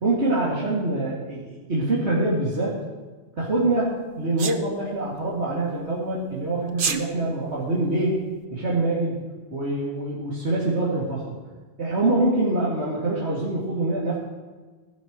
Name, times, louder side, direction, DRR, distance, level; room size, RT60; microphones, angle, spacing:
voice 1, 0.0-2.8 3.4-8.1 8.5-9.2 9.5-11.4 11.8-14.2, right 2 dB, 75° right, -7 dB, 3.0 m, -25 dB
Sneeze, 4.4-4.6 6.7-7.0, right 6 dB, 50° right, 1.0 m, -25 dB
20.5 x 11.5 x 3.3 m, 1.3 s
omnidirectional pair, 1.2 m